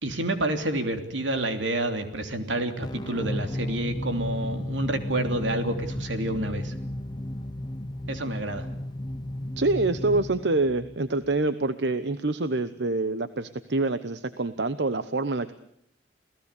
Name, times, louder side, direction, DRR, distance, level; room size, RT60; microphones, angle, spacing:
voice 1, 0.0-6.7 8.1-8.7, right 1 dB, 85° right, 7 dB, 3.1 m, -29 dB
sound 1, 2.8-11.5, left 1 dB, 25° left, 1.0 m, -33 dB
voice 2, 9.6-15.5, right 2 dB, 65° right, 12 dB, 1.0 m, -26 dB
28.5 x 17.5 x 8.4 m, 0.73 s
head